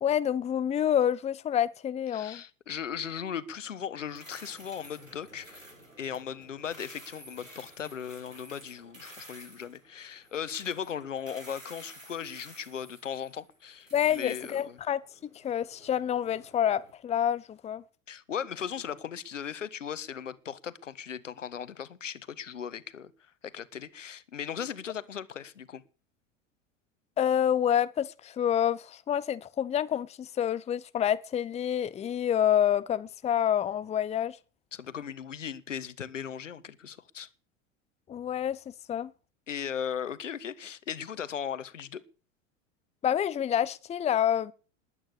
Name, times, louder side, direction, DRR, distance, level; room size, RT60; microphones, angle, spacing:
voice 1, 0.0-2.4 13.9-17.8 27.2-34.4 38.1-38.6 38.9-39.1 43.0-44.5, left 9 dB, 15° left, 0.8 m, -28 dB
voice 2, 2.1-5.6 6.0-14.8 18.1-23.1 23.4-25.8 34.7-37.3 39.5-42.0, left 8 dB, 75° left, 1.5 m, -37 dB
sound 1, 4.0-16.9, right 1 dB, 90° right, 4.9 m, -52 dB
20.5 x 9.2 x 6.8 m
figure-of-eight pair, 85°, 38 cm